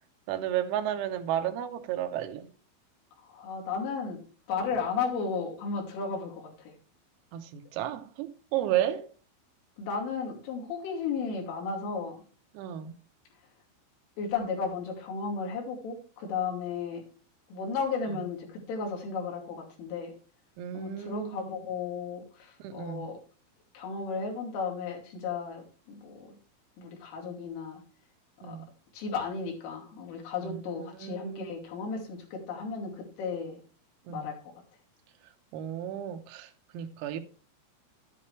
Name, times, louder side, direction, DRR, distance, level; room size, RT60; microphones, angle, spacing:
voice 1, 0.3-2.5 7.3-9.1 12.6-13.0 20.6-21.4 22.6-23.1 28.4-28.7 30.4-31.5 34.1-34.3 35.5-37.2, right 11 dB, 85° right, 3.8 m, -33 dB
voice 2, 3.2-4.2 4.5-6.8 9.8-12.2 14.2-17.0 17.5-20.1 20.7-23.2 23.7-26.4 26.8-27.8 28.4-28.6 28.9-33.6 34.1-34.5, left 5 dB, 70° left, 4.9 m, -34 dB
11.5 x 10.0 x 3.2 m
omnidirectional pair, 6.0 m